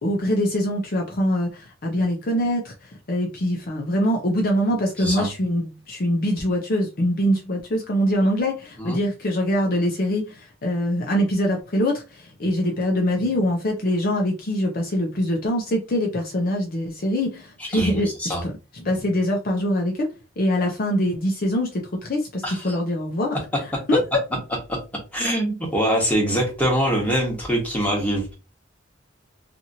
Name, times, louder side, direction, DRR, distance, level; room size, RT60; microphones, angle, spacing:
voice 1, 0.0-20.1 20.4-23.4 23.9-24.0 24.3-24.4, equal, 50° left, 0.6 m, -23 dB
voice 2, 5.0-5.3 8.8-9.0 17.7-17.9 18.2-18.4 22.4-22.7 24.7-24.8 25.1-28.3, equal, 10° left, 1.2 m, -23 dB
2.8 x 2.5 x 2.7 m
head